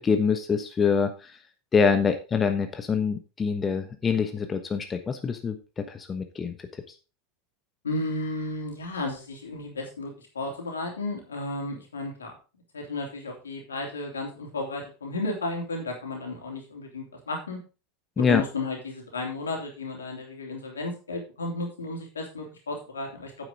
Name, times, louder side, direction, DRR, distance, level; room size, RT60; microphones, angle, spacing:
voice 1, 0.0-1.4 1.7-6.8 18.2-18.4, left 5 dB, 25° left, 7 dB, 1.2 m, -25 dB
voice 2, 7.8-12.3 12.7-17.6 18.3-23.3, left 2 dB, 80° left, 1 dB, 3.2 m, -33 dB
9.2 x 8.3 x 3.9 m, 0.33 s
figure-of-eight pair, 85°, 0 cm